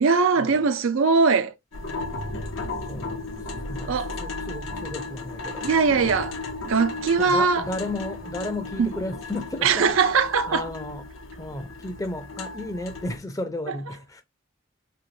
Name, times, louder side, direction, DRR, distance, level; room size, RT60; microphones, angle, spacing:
voice 1, 0.0-1.5 3.9-4.1 5.6-6.4 6.6-7.7 8.8-8.9 9.6-10.7, right 5 dB, 75° right, 0.5 m, -21 dB
sound 1, 1.7-13.2, left 3 dB, 70° left, 0.9 m, -35 dB
voice 2, 2.8-3.3 3.6-3.9 4.2-6.0 7.2-9.9 10.5-11.0 11.4-14.2, left 2 dB, 15° left, 0.6 m, -34 dB
4.5 x 2.2 x 2.6 m
head